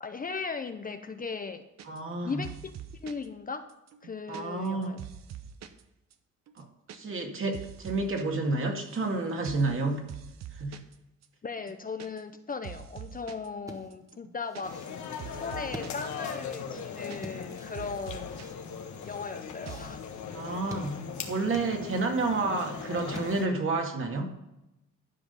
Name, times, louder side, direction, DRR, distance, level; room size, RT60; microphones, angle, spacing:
voice 1, 0.0-1.6 2.2-2.7 3.0-3.6 4.0-5.0 11.4-14.7 15.3-18.5 19.1-20.0, left 5 dB, 30° left, 8 dB, 0.7 m, -37 dB
voice 2, 1.8-2.4 4.3-4.9 6.6-6.7 6.9-10.0 10.5-10.8 20.3-21.0 21.3-24.3, right 3 dB, 45° right, 2 dB, 2.2 m, -30 dB
sound 1, 1.8-2.2 2.4-3.3 3.7-5.8 6.1-6.2 6.5-7.0 7.2-8.2 8.5-9.1 9.4-9.8 10.1-11.0 11.2-11.3 11.6-12.4 12.6-13.5 13.9-16.0 16.3-16.4 16.7-17.5 17.7-18.5 18.7-19.3 19.7-20.0, right 10 dB, 60° right, 0.9 m, -45 dB
sound 2, 13.6-23.7, right 1 dB, 10° right, 1.5 m, -48 dB
sound 3, 14.6-23.5, left 7 dB, 70° left, 1.4 m, -39 dB
12.5 x 5.1 x 5.4 m, 0.92 s
cardioid pair, 90°, 30 cm